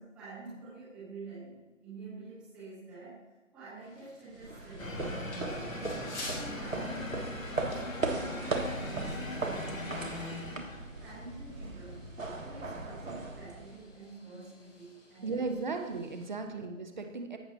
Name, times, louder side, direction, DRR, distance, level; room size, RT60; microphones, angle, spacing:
voice 1, 0.0-3.2 3.5-5.1 5.6-10.7 11.0-12.1 12.4-15.8 16.4-16.7, right 3 dB, ahead, -11 dB, 1.0 m, -48 dB
sound 1, 3.8-16.3, left 2 dB, 55° left, 2.2 m, -52 dB
sound 2, 4.4-14.0, right 3 dB, 75° right, 1.5 m, -38 dB
sound 3, 4.8-11.1, left 2 dB, 80° left, 1.4 m, -40 dB
voice 2, 15.2-17.4, right 4 dB, 35° right, 5 dB, 0.8 m, -36 dB
15.0 x 6.0 x 2.7 m, 1.1 s
figure-of-eight pair, 145°, 39 cm